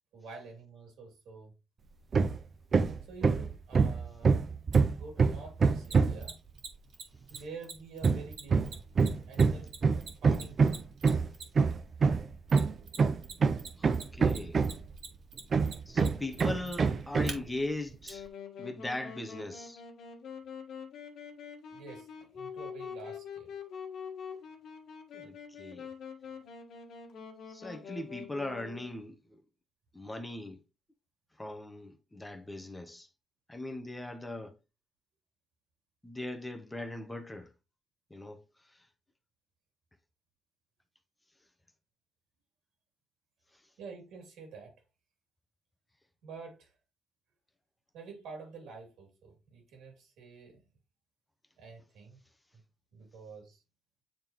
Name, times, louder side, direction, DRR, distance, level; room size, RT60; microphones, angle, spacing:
voice 1, 0.1-1.5 3.1-4.6 4.9-6.4 7.3-8.7 9.3-9.7 10.2-10.8 21.7-23.5 43.8-44.7 46.2-46.7 47.9-50.6 51.6-52.2 52.9-53.6, right 4 dB, 85° right, 2.7 m, -48 dB
Hammer, 2.1-2.4 2.7-6.3 8.0-15.0 15.5-17.4, right 5 dB, 45° right, 0.5 m, -26 dB
Mechanisms, 4.7-4.8 5.8-11.7 12.5-13.3 13.6-17.3 18.1-18.2, right 5 dB, 65° right, 1.9 m, -44 dB
voice 2, 13.8-14.6 15.9-18.3 18.6-19.8 25.1-25.9 27.5-29.2 29.9-30.6 31.4-33.1 33.5-34.6 36.0-37.5 38.1-38.4, left 2 dB, 10° left, 0.8 m, -39 dB
Wind instrument woodwind instrument, 18.1-29.0, left 7 dB, 70° left, 1.5 m, -45 dB
8.6 x 3.6 x 3.0 m
cardioid pair, 90°, 0 cm